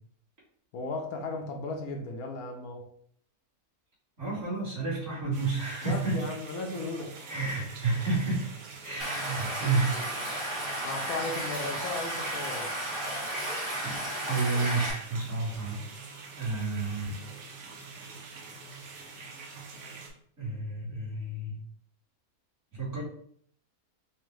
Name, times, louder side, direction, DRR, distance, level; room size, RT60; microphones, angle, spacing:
voice 1, 0.7-2.8 5.8-7.1 10.8-12.7, left 2 dB, 75° left, 3 dB, 1.1 m, -35 dB
voice 2, 4.2-6.2 7.3-8.5 8.8-9.9 13.8-13.9 14.2-15.8 16.4-17.2 19.0-19.7 20.4-21.6 22.7-23.0, right 3 dB, 50° right, -7 dB, 2.0 m, -31 dB
sound 1, 5.3-20.1, right 4 dB, 70° right, 1.1 m, -46 dB
Stream, 9.0-14.9, right 1 dB, 20° right, 1.0 m, -34 dB
4.4 x 2.1 x 3.1 m, 0.63 s
omnidirectional pair, 1.6 m